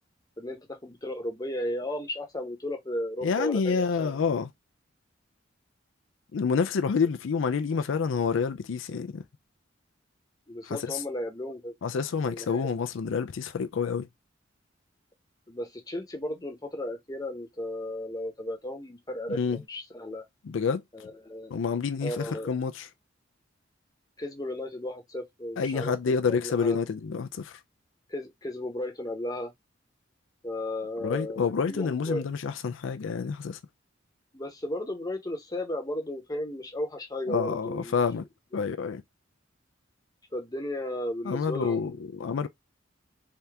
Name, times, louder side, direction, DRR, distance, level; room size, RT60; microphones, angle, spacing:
voice 1, 0.4-4.2 10.5-11.7 12.3-12.6 15.5-20.2 21.0-21.5 22.0-22.5 24.2-25.9 26.3-26.8 28.1-29.5 30.4-32.2 34.3-38.0 40.3-42.0, left 1 dB, 20° left, 0.9 m, -34 dB
voice 2, 3.2-4.5 6.3-9.2 10.6-11.0 11.8-14.1 19.3-19.6 20.4-20.8 21.5-22.9 25.6-27.6 31.0-33.6 37.3-38.3 38.5-39.0 41.2-42.5, left 5 dB, 85° left, 0.4 m, -28 dB
3.4 x 2.8 x 3.4 m
head